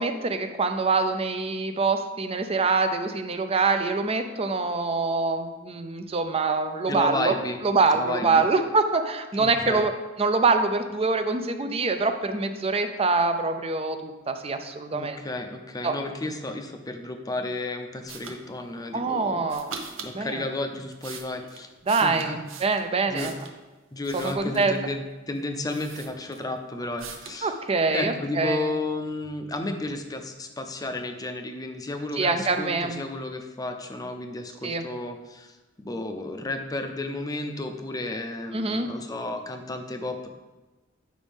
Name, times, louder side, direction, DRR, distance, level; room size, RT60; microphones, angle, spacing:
voice 1, 0.0-7.3 7.6-9.9 10.2-15.2 15.8-15.9 18.9-19.7 20.1-20.5 21.9-23.3 24.1-24.8 27.4-28.6 32.2-33.0 34.6-34.8 38.5-38.9, right 3 dB, 30° right, 7 dB, 0.5 m, -25 dB
voice 2, 6.9-7.6 7.9-8.5 9.4-9.9 14.9-19.5 20.0-21.7 22.0-22.4 23.1-23.3 23.9-27.5 27.9-40.3, left 2 dB, 20° left, 5 dB, 0.6 m, -32 dB
sound 1, 18.1-18.4 19.5-20.2 20.7-23.6 24.0-24.8 25.4-25.5 25.7-26.6 27.0-27.4, right 5 dB, 75° right, 0.8 m, -41 dB
8.9 x 5.2 x 3.5 m, 1.1 s
head